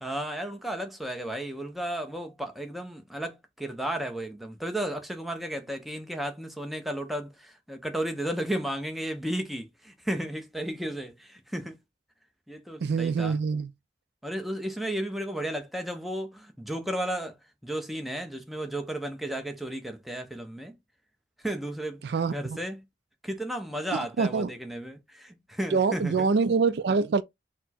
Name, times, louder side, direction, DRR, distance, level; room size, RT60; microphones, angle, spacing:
voice 1, 0.0-11.8 12.5-13.4 14.2-17.3 17.6-20.7 21.4-22.0 22.3-22.8 23.2-26.3, right 1 dB, ahead, 0.6 m, -33 dB
voice 2, 12.8-13.7 22.0-22.6 23.9-24.5 25.7-27.2, right 5 dB, 70° right, 0.3 m, -25 dB
4.2 x 2.1 x 4.2 m
head